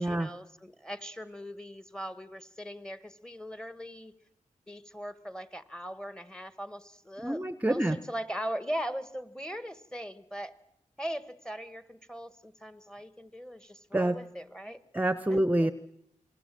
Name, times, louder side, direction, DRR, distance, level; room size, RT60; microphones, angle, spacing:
voice 1, 0.0-4.1 4.7-10.5 11.0-14.8 15.3-15.7, equal, 5° left, 12 dB, 1.4 m, -40 dB
voice 2, 7.2-8.0 13.9-14.2 14.9-15.7, right 1 dB, 10° right, 12 dB, 0.9 m, -27 dB
28.0 x 21.0 x 7.6 m, 0.76 s
wide cardioid pair, 100°, 13 cm